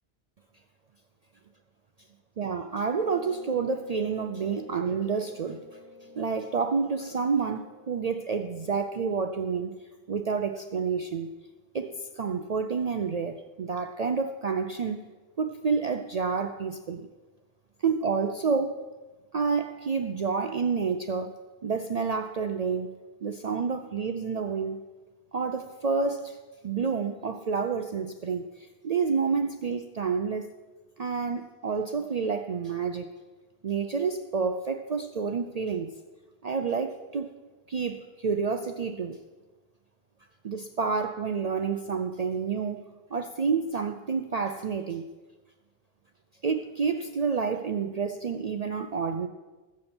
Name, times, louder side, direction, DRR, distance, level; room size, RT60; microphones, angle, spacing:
voice 1, 2.4-5.6 6.2-9.7 10.1-11.3 11.7-15.1 15.4-17.1 17.8-18.8 19.3-21.3 21.6-22.9 23.2-24.8 25.3-26.4 26.6-30.5 31.0-33.1 33.6-35.9 36.4-37.3 37.7-39.2 40.4-45.0 46.4-49.3, right 5 dB, 50° right, 7 dB, 0.5 m, -29 dB
sound 1, 3.0-9.1, left 2 dB, 25° left, 3.2 m, -50 dB
20.5 x 7.2 x 4.4 m, 1.3 s
omnidirectional pair, 1.1 m